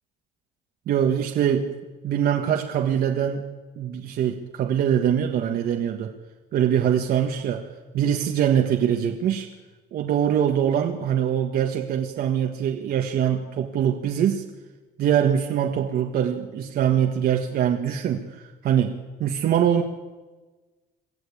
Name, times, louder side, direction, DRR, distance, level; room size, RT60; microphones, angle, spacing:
voice 1, 0.9-1.7 2.0-3.5 3.8-6.1 6.5-9.5 9.9-14.4 15.0-18.9 19.2-19.8, right 9 dB, 65° right, 3 dB, 1.6 m, -23 dB
23.5 x 14.5 x 8.6 m, 1.3 s
cardioid pair, 110°, 17 cm